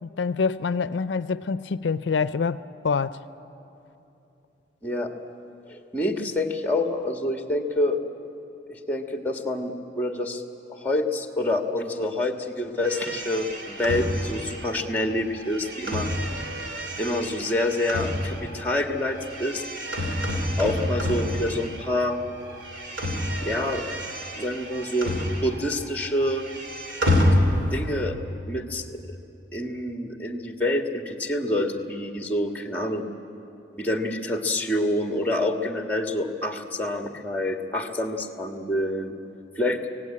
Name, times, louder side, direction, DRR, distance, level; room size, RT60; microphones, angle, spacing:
voice 1, 0.0-3.2, left 5 dB, 85° left, 0.4 m, -26 dB
voice 2, 5.7-8.0 8.7-10.4 10.7-16.1 17.0-19.6 20.6-22.2 23.4-23.8 24.3-25.1 25.4-26.5 27.6-28.2 28.5-29.0 29.5-33.1 33.8-39.1 39.6-39.8, left 1 dB, 10° left, 1.6 m, -27 dB
sound 1, 12.8-22.1 22.4-25.8 26.1-28.0, left 1 dB, 90° right, 2.7 m, -28 dB
25.5 x 17.5 x 8.7 m
head